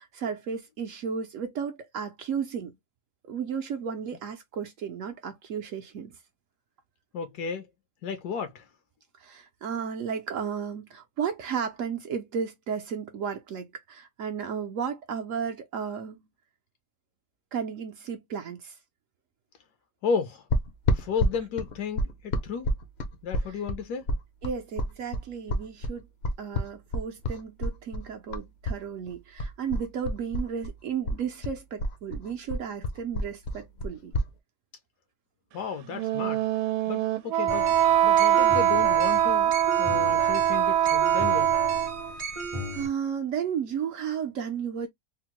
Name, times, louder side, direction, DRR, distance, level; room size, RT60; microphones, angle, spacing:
voice 1, 0.0-2.7 3.3-6.2 9.2-16.2 17.5-18.8 24.4-26.1 26.4-34.1 42.7-44.9, right 7 dB, 65° right, 0.8 m, -33 dB
voice 2, 7.1-7.7 8.0-8.7 20.0-20.4 20.9-22.7 23.2-24.1 35.5-36.5 36.9-37.7 38.0-41.6, left 6 dB, 75° left, 1.1 m, -33 dB
sound 1, 20.5-28.8 29.1-30.8 31.0-34.3, left 1 dB, 60° left, 0.7 m, -29 dB
Wind instrument woodwind instrument, 35.9-42.1, right 11 dB, 85° right, 1.2 m, -23 dB
sound 2, 37.5-42.9, right 1 dB, 35° right, 0.5 m, -35 dB
3.5 x 2.0 x 2.8 m
omnidirectional pair, 1.8 m